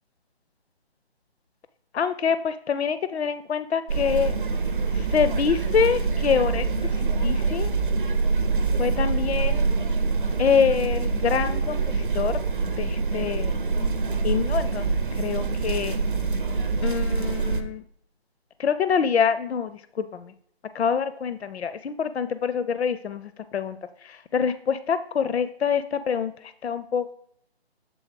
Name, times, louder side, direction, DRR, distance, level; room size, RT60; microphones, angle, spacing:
voice 1, 1.9-4.4 4.9-7.7 8.8-9.6 10.4-12.4 12.8-13.6 14.2-14.9 15.1-16.0 16.8-17.8 18.6-20.3 20.7-27.1, left 6 dB, 80° left, 12 dB, 0.5 m, -26 dB
sound 1, 3.9-17.6, right 4 dB, 50° right, 0.7 m, -25 dB
7.7 x 3.6 x 5.0 m, 0.66 s
hypercardioid pair, 175°, 32 cm